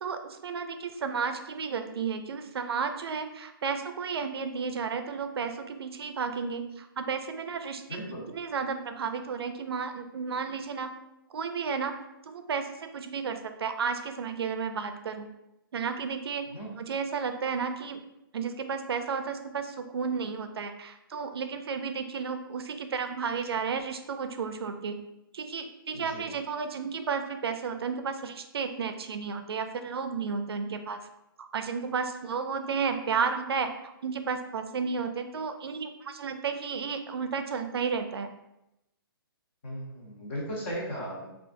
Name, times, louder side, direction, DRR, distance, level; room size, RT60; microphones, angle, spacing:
voice 1, 0.0-8.0 8.3-10.9 11.3-12.0 12.3-15.3 15.7-16.5 16.8-18.0 18.3-25.0 25.3-31.0 31.4-38.3, right 5 dB, 90° right, 7 dB, 0.4 m, -32 dB
voice 2, 7.9-8.3 16.5-16.7 25.9-26.3 39.6-41.3, equal, 30° left, -4 dB, 0.9 m, -36 dB
3.7 x 2.4 x 2.5 m, 0.90 s
hypercardioid pair, 165°, 13 cm